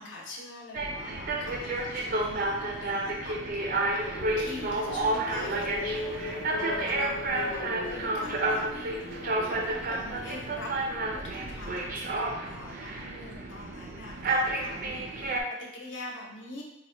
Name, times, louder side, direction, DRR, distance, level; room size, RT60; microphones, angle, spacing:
voice 1, 0.0-16.6, left 2 dB, 65° left, -2 dB, 0.7 m, -44 dB
sound 1, 0.7-15.4, right 2 dB, 45° right, 0.4 m, -31 dB
sound 2, 3.4-11.4, left 2 dB, 45° left, 0.3 m, -39 dB
4.0 x 2.1 x 2.9 m, 0.95 s
head